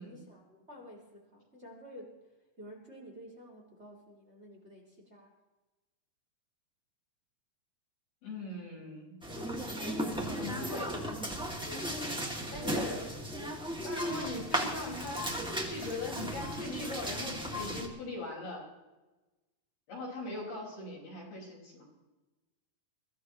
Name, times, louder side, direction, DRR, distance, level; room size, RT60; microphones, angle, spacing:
voice 1, 0.0-5.3 12.1-13.4 13.8-14.0, left 1 dB, 20° right, -1 dB, 2.4 m, -50 dB
voice 2, 8.2-9.2 10.3-10.9 12.5-13.0 13.8-15.3 15.7-18.6 19.9-21.9, left 2 dB, 90° left, -3 dB, 7.0 m, -40 dB
sound 1, 9.2-17.9, equal, ahead, 1.1 m, -36 dB
22.5 x 15.0 x 3.1 m, 1.1 s
omnidirectional pair, 4.2 m